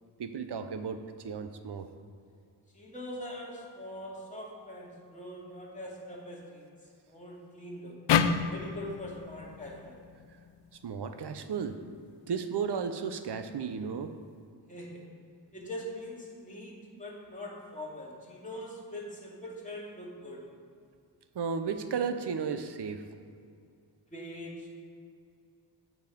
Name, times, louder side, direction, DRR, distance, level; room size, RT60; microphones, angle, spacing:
voice 1, 0.2-1.9 10.8-11.8 12.3-14.1 21.3-23.0, right 6 dB, 75° right, 9 dB, 0.8 m, -34 dB
voice 2, 2.7-6.7 7.1-8.0 8.5-10.0 14.7-15.1 15.5-20.4 24.1-24.7, left 1 dB, 20° left, -5 dB, 2.4 m, -42 dB
sound 1, 8.1-11.3, left 7 dB, 90° left, 0.5 m, -30 dB
8.3 x 7.2 x 5.2 m, 2.3 s
wide cardioid pair, 80°, 41 cm